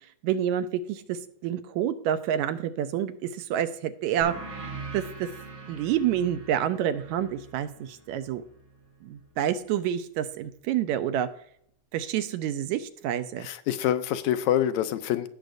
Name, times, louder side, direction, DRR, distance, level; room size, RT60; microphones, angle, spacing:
voice 1, 0.0-5.3 5.7-8.4 9.0-11.3 11.9-13.5, right 10 dB, 80° right, 10 dB, 1.9 m, -28 dB
sound 1, 4.2-9.4, right 3 dB, 45° right, 3.4 m, -43 dB
voice 2, 13.4-15.3, left 11 dB, 80° left, 11 dB, 1.9 m, -26 dB
17.0 x 6.5 x 2.6 m, 0.68 s
omnidirectional pair, 3.4 m